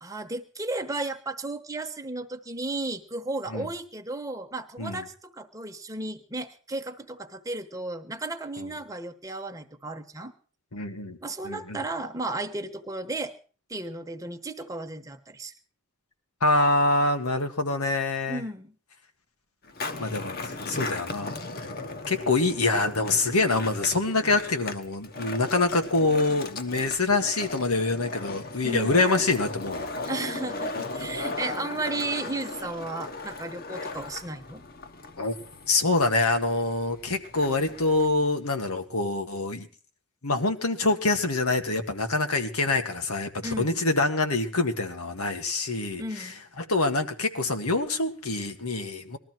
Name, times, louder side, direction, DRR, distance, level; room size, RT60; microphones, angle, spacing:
voice 1, 0.0-10.3 11.2-13.3 13.7-15.5 18.3-18.7 28.6-29.0 30.0-34.6 43.4-43.8 46.0-46.4, right 2 dB, 15° right, 6 dB, 1.1 m, -34 dB
voice 2, 10.7-11.2 11.4-11.8 16.4-18.4 20.0-21.3 22.1-30.0 35.2-35.4 35.7-39.7 40.2-46.3 46.6-49.2, left 2 dB, 90° left, 6 dB, 1.8 m, -25 dB
Skateboard, 19.6-38.3, left 3 dB, 45° left, 1.1 m, -37 dB
20.5 x 13.5 x 4.6 m, 0.40 s
head